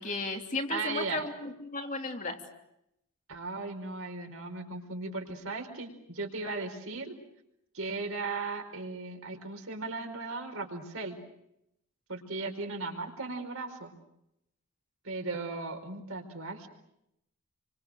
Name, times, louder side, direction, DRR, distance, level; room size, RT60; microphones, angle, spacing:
voice 1, 0.0-2.4, left 3 dB, 35° left, 3 dB, 3.1 m, -34 dB
voice 2, 0.7-1.2 3.3-7.1 7.7-11.2 12.1-13.9 15.0-16.7, right 3 dB, 70° right, 4 dB, 4.8 m, -37 dB
30.0 x 25.0 x 6.5 m, 0.80 s
head